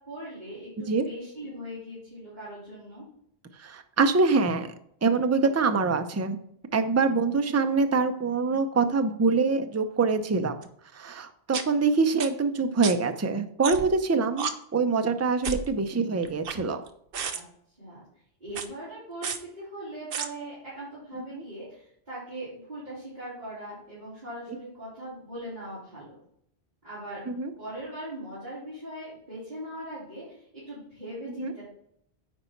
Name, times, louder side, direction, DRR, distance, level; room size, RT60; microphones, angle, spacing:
voice 1, 0.0-3.1 17.2-17.4 17.8-18.0 18.4-26.2 26.8-27.2 27.6-31.6, right 1 dB, 45° right, -12 dB, 3.6 m, -40 dB
voice 2, 3.6-4.7 5.0-6.4 6.7-10.6 10.9-16.8 21.1-21.4 27.3-27.5 31.4-31.5, right 4 dB, 20° right, 8 dB, 0.4 m, -25 dB
sound 1, 10.6-10.7 11.5-11.6 12.2-12.3 12.8-12.9 13.6-14.0 14.4-14.5 15.4-15.7 16.2-16.9 17.1-17.4 18.5-18.7 19.2-19.4 20.1-20.3, right 6 dB, 65° right, 0.9 m, -31 dB
9.7 x 4.1 x 4.5 m, 0.70 s
omnidirectional pair, 1.1 m